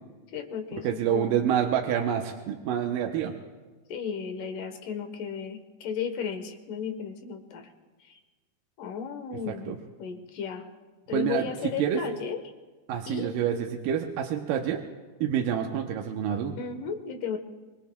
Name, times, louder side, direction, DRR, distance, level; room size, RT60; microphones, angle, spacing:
voice 1, 0.3-1.4 3.9-7.7 8.0-8.2 8.8-9.7 10.0-10.7 11.1-12.4 13.1-13.3 16.6-17.4, left 7 dB, 75° left, 6 dB, 2.8 m, -34 dB
voice 2, 0.8-3.3 9.5-9.8 11.1-11.5 11.8-12.0 12.9-14.8 15.2-16.6, right 9 dB, 80° right, 2 dB, 2.5 m, -27 dB
25.0 x 24.0 x 2.3 m, 1.3 s
omnidirectional pair, 3.9 m